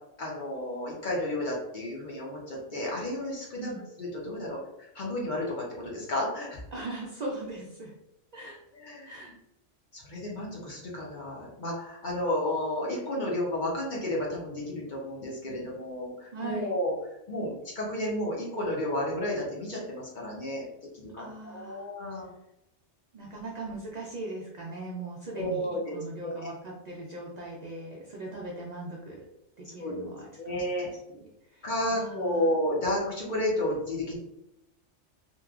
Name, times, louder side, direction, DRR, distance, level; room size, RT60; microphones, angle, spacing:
voice 1, 0.2-3.7 4.0-6.6 8.7-9.3 9.9-16.9 17.3-20.7 20.9-22.3 25.3-26.0 26.2-26.5 29.8-29.9 30.4-30.9 31.6-34.2, left 1 dB, 50° left, -4 dB, 0.7 m, -32 dB
voice 2, 6.7-7.9 8.3-8.6 9.1-9.3 16.3-16.7 21.2-21.9 23.1-25.7 25.9-29.2 29.6-30.3 30.5-30.9 31.5-32.5, right 2 dB, 65° right, -2 dB, 0.4 m, -39 dB
3.0 x 2.1 x 2.3 m, 0.84 s
omnidirectional pair, 1.2 m